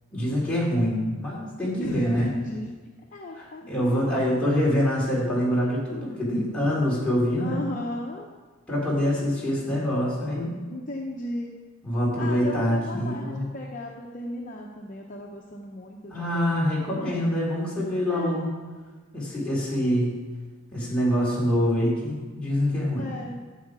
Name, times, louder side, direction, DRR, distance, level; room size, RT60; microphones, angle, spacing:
voice 1, 0.1-2.3 3.4-7.6 8.7-10.6 11.8-13.5 16.1-18.5 19.1-20.2 20.7-23.1, equal, 5° left, -7 dB, 3.5 m, -25 dB
voice 2, 1.8-2.7 3.1-4.3 7.4-8.3 10.7-11.5 12.2-16.6 18.1-18.6 22.9-23.4, left 1 dB, 40° left, -1 dB, 0.8 m, -35 dB
12.5 x 7.4 x 4.9 m, 1.4 s
head